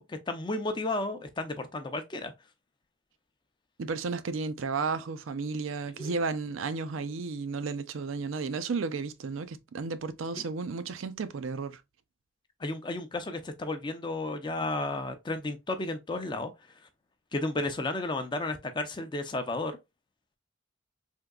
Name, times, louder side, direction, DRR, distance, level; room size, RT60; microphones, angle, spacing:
voice 1, 0.0-2.3 6.0-6.2 12.6-16.5 17.3-19.8, left 2 dB, 25° left, 0.4 m, -33 dB
voice 2, 3.8-11.8, right 4 dB, 85° right, 0.4 m, -33 dB
3.6 x 2.7 x 2.3 m
head